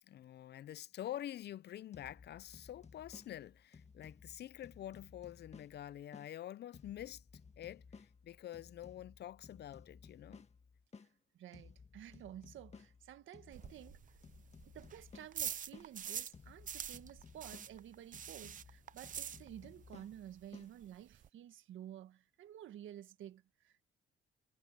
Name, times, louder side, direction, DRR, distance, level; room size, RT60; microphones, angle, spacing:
voice 1, 0.0-7.2 7.6-10.5, left 12 dB, 55° left, 0.5 m, -47 dB
sound 1, 1.9-6.3 6.7-11.1 11.5-15.9 16.3-20.7, left 5 dB, 35° left, 1.8 m, -58 dB
voice 2, 11.3-14.0 14.7-23.8, right 11 dB, 75° right, 1.6 m, -52 dB
sound 2, 13.5-16.4 16.6-19.9 20.1-20.2 20.5-20.6 20.8-21.3, right 9 dB, 40° right, 0.5 m, -45 dB
cardioid pair, 90°, 20 cm